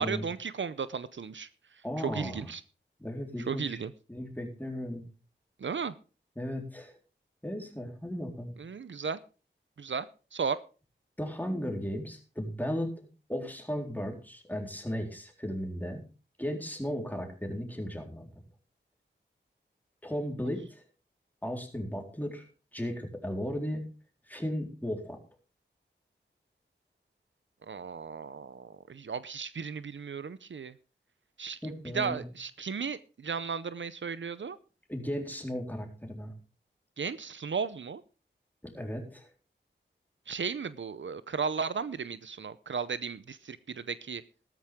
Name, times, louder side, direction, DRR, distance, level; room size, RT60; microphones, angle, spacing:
voice 1, 0.0-1.5 2.0-2.6 3.5-3.9 5.6-5.9 8.6-9.2 9.8-10.1 10.3-10.6 27.7-30.7 31.4-31.6 31.9-34.6 37.0-38.0 40.3-44.2, right 6 dB, 75° right, 15 dB, 0.7 m, -35 dB
voice 2, 1.8-2.5 3.0-3.8 4.1-5.0 6.4-6.9 7.4-8.5 11.2-12.9 13.3-16.0 16.4-18.3 20.0-20.8 21.4-22.4 22.7-23.8 24.3-25.2 31.6-32.2 34.9-36.3 38.6-39.3, equal, 10° left, 3 dB, 3.9 m, -35 dB
13.5 x 13.0 x 3.6 m, 0.34 s
wide cardioid pair, 50°, 20 cm